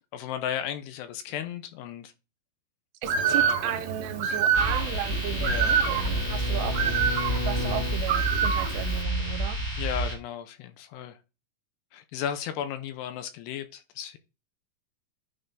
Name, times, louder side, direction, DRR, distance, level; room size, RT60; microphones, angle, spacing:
voice 1, 0.1-2.1 3.3-3.8 5.4-5.8 9.8-11.2 11.9-14.2, left 10 dB, 85° left, 2.7 m, -35 dB
Bird, 3.0-9.0, right 7 dB, 50° right, 2.6 m, -27 dB
voice 2, 3.0-6.8 7.4-9.6, right 13 dB, 85° right, 2.8 m, -35 dB
sound 1, 4.5-10.1, right 1 dB, 25° left, 1.5 m, -29 dB
Bowed string instrument, 4.7-8.1, left 7 dB, 70° left, 2.5 m, -36 dB
9.5 x 3.4 x 3.8 m
omnidirectional pair, 5.0 m